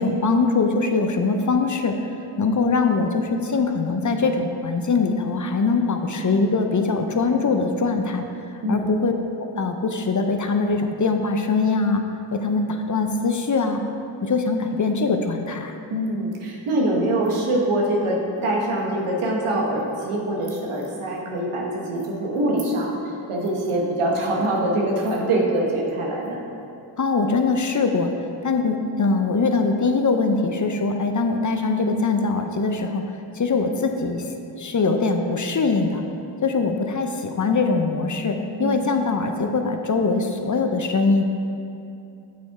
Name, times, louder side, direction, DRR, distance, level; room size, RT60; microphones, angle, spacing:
voice 1, 0.0-2.0 2.4-8.3 8.7-9.1 9.6-12.0 12.3-13.8 14.2-15.7 27.0-28.1 28.4-33.0 33.3-34.2 34.6-36.0 36.4-41.2, left 4 dB, 35° left, 5 dB, 0.6 m, -22 dB
voice 2, 15.9-26.4 38.6-38.8, right 1 dB, 80° right, -2 dB, 1.3 m, -24 dB
7.7 x 4.1 x 4.7 m, 2.6 s
cardioid pair, 45°, 50 cm